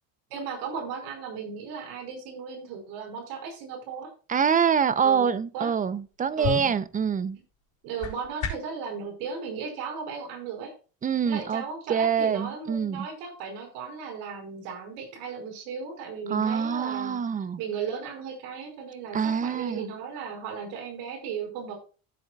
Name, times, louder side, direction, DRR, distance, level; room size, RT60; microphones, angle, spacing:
voice 1, 0.3-4.1 5.0-5.7 6.4-6.7 7.8-10.7 11.2-17.2 17.6-21.7, right 6 dB, 90° right, 5.3 m, -36 dB
voice 2, 4.3-7.4 11.0-11.6 11.9-13.1 16.3-17.6 19.1-19.9, right 7 dB, 20° right, 0.6 m, -25 dB
sound 1, 6.0-8.8, left 5 dB, 55° left, 3.9 m, -35 dB
15.0 x 7.8 x 2.3 m
cardioid pair, 145°, 38 cm